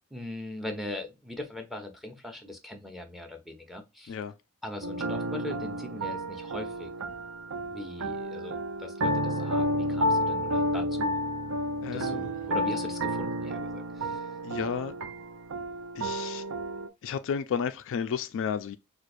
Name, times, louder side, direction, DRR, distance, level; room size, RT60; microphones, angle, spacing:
voice 1, 0.1-4.2 4.6-6.9 7.6-11.2 11.9-14.2, left 1 dB, ahead, 0.7 m, -40 dB
sound 1, 4.8-16.9, equal, 65° right, 0.6 m, -31 dB
voice 2, 11.8-12.3 14.4-15.0 15.9-16.4 17.0-18.8, left 7 dB, 60° left, 0.3 m, -32 dB
4.6 x 2.4 x 2.5 m
head